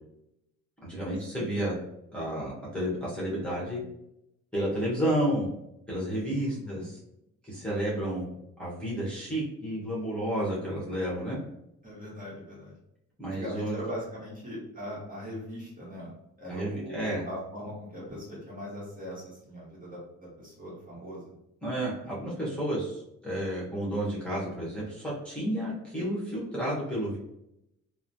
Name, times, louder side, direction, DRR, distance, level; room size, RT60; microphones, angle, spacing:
voice 1, 0.8-1.8 2.1-3.8 4.5-5.5 5.9-6.9 7.4-8.3 8.6-11.4 13.2-13.8 16.5-17.2 21.6-27.2, right 1 dB, 5° left, -6 dB, 1.1 m, -31 dB
voice 2, 6.3-6.8 11.8-12.8 13.3-16.1 16.4-21.4, equal, 30° right, -6 dB, 1.2 m, -40 dB
3.0 x 2.0 x 2.6 m, 0.82 s
cardioid pair, 90°, 30 cm